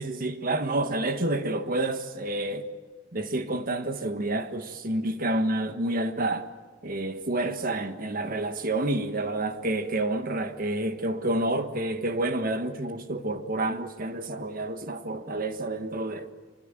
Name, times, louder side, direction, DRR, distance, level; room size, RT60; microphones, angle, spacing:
voice 1, 0.0-2.7 3.1-6.5 6.8-16.3, right 2 dB, 50° right, 1.6 m, -29 dB
26.0 x 24.0 x 9.1 m
head